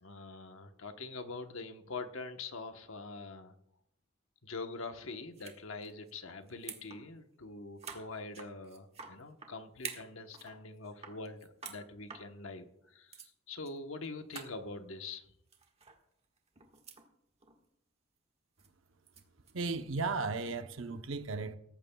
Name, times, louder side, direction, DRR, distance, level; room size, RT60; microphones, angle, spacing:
voice 1, 0.0-3.5 4.4-11.4 11.7-13.1 13.5-15.2, left 3 dB, 75° left, 1.1 m, -44 dB
sound 1, 5.3-5.6 5.8-6.1 6.5-7.0 7.3-7.4 7.8-9.5 9.8-10.6 10.8-11.8 12.1-12.2 12.8-12.9 13.1-13.3 13.7-13.8 14.0-14.1 14.3-14.5 15.5-16.0 16.4-17.1 17.4-17.7 18.6-19.5, right 6 dB, 30° right, 1.5 m, -47 dB
voice 2, 19.5-21.6, right 4 dB, 65° right, 0.8 m, -35 dB
17.5 x 14.5 x 2.3 m
head